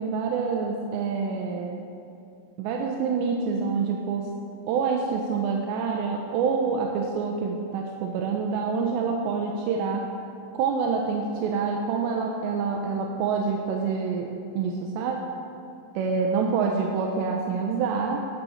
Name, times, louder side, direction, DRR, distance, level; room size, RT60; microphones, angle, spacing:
voice 1, 0.0-1.9 2.6-4.3 4.7-10.1 10.5-14.3 14.6-15.3 16.0-18.2, right 5 dB, 80° right, 1 dB, 2.8 m, -27 dB
19.0 x 6.8 x 4.2 m, 2.5 s
omnidirectional pair, 5.3 m